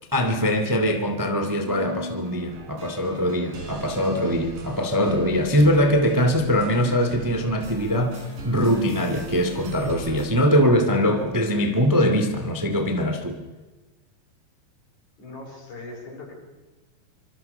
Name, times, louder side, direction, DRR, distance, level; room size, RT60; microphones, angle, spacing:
voice 1, 0.1-13.4, equal, 15° right, 5 dB, 0.6 m, -22 dB
sound 1, 1.7-10.3, right 3 dB, 55° right, 5.6 m, -38 dB
voice 2, 15.2-16.3, left 2 dB, 45° left, 0 dB, 7.6 m, -39 dB
25.5 x 25.5 x 6.9 m, 1.2 s
omnidirectional pair, 4.9 m